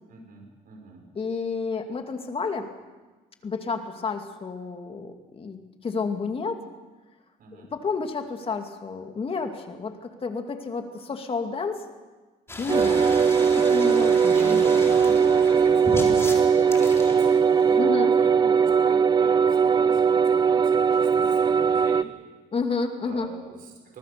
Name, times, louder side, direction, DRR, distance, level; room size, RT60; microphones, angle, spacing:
voice 1, 0.1-1.0 7.4-7.7 12.7-13.3 14.3-22.1 23.0-24.0, right 4 dB, 60° right, 1 dB, 6.1 m, -41 dB
voice 2, 1.1-2.7 3.4-6.6 7.5-9.9 10.2-11.8 12.6-13.1 13.5-14.6 17.8-18.1 22.5-23.3, left 4 dB, 35° left, 5 dB, 2.6 m, -30 dB
sound 1, 12.5-17.8, left 2 dB, 15° left, 4.2 m, -36 dB
sound 2, 12.7-22.0, right 6 dB, 25° right, 0.6 m, -20 dB
25.0 x 19.5 x 6.9 m, 1.3 s
cardioid pair, 110°, 17 cm